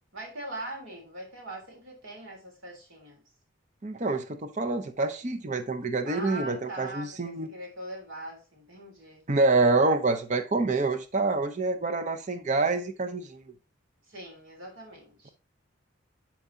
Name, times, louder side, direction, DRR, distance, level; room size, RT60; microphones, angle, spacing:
voice 1, 0.1-3.2 6.0-9.2 14.1-15.3, right 1 dB, 70° right, 3.3 m, -41 dB
voice 2, 3.8-7.5 9.3-13.4, right 3 dB, 35° right, 0.6 m, -26 dB
11.0 x 4.6 x 2.7 m
head